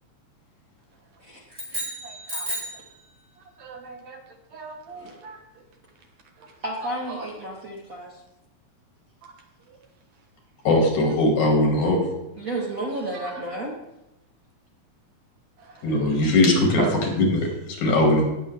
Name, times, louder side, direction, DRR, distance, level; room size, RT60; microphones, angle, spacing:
sound 1, 1.5-2.9, right 1 dB, 20° right, 3.3 m, -32 dB
voice 1, 1.7-2.6 3.4-5.6 6.0-6.1 6.4-6.6 6.8-7.3 9.2-9.3 9.7-9.8 13.1-13.4 15.6-16.3 16.8-17.1, right 4 dB, 70° right, 3 dB, 2.6 m, -38 dB
voice 2, 6.6-8.2 12.4-13.7, right 1 dB, 45° right, -2 dB, 1.2 m, -32 dB
voice 3, 10.7-12.0 15.8-16.8 17.2-18.2, left 1 dB, 85° left, 1 dB, 3.8 m, -20 dB
18.0 x 7.1 x 3.5 m, 0.91 s
omnidirectional pair, 3.3 m